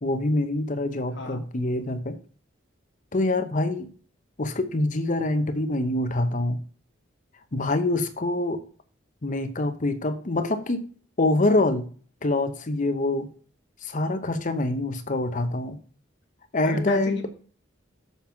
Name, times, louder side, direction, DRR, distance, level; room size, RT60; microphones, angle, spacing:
voice 1, 0.0-2.2 3.1-3.9 4.4-6.6 7.5-8.6 9.2-10.8 11.2-11.9 12.2-13.3 13.8-15.8 16.5-17.2, left 2 dB, 40° left, 9 dB, 0.9 m, -25 dB
voice 2, 16.6-17.3, left 1 dB, 65° left, 4 dB, 1.8 m, -34 dB
7.4 x 5.5 x 5.7 m, 0.41 s
head